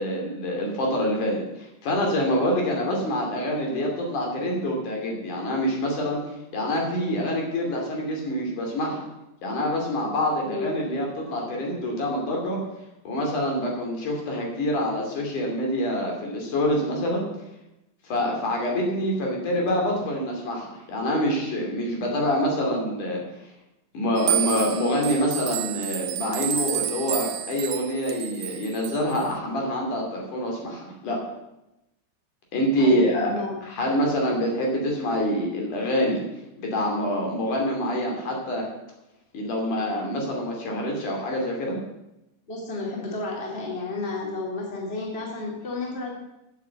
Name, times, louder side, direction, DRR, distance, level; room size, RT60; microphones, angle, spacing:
voice 1, 0.0-6.2 6.5-9.1 9.4-12.6 13.0-17.2 18.0-23.2 23.9-31.2 32.5-33.3 33.6-36.2 36.6-38.7 39.3-41.8, equal, 70° left, 0 dB, 4.2 m, -26 dB
voice 2, 10.4-10.8 32.8-33.6 42.5-46.1, left 3 dB, 20° left, -1 dB, 2.6 m, -31 dB
sound 1, 24.2-29.2, right 13 dB, 80° right, 2.3 m, -30 dB
9.6 x 8.7 x 8.0 m, 0.91 s
omnidirectional pair, 3.8 m